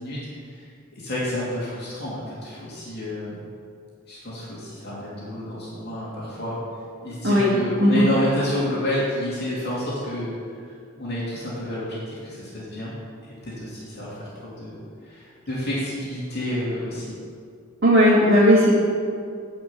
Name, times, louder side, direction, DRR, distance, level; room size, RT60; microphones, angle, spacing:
voice 1, 0.0-3.4 4.1-6.6 7.0-10.3 10.7-12.9 13.2-17.2, left 1 dB, 50° left, -7 dB, 2.6 m, -30 dB
voice 2, 7.8-8.1 17.8-18.7, equal, 60° right, -9 dB, 2.1 m, -16 dB
10.5 x 5.3 x 7.0 m, 2.3 s
head